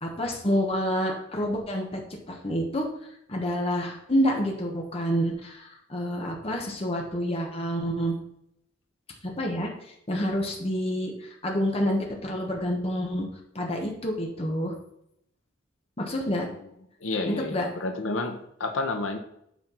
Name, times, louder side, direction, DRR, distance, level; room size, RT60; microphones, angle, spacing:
voice 1, 0.0-2.0 2.3-2.9 3.3-8.1 9.4-13.2 13.5-14.7 16.0-16.5 17.3-17.7, equal, 30° left, 1 dB, 1.2 m, -28 dB
voice 2, 17.0-19.2, left 2 dB, 80° left, 6 dB, 1.0 m, -30 dB
8.3 x 4.5 x 5.6 m, 0.75 s
head